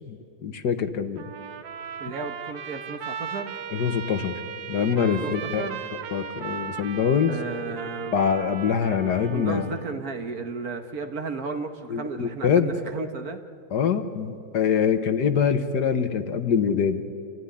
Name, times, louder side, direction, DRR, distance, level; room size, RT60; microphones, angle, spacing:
voice 1, 0.0-1.2 3.7-4.3 4.7-5.7 5.9-7.3 8.1-9.7 11.9-12.7 13.7-17.0, left 7 dB, 65° left, 9 dB, 1.7 m, -24 dB
Trumpet, 1.2-10.0, right 7 dB, 85° right, 1.7 m, -37 dB
voice 2, 2.0-3.6 5.0-5.8 7.3-8.2 9.3-13.4, right 4 dB, 55° right, 6 dB, 1.7 m, -34 dB
28.5 x 15.5 x 9.9 m, 2.5 s
omnidirectional pair, 2.0 m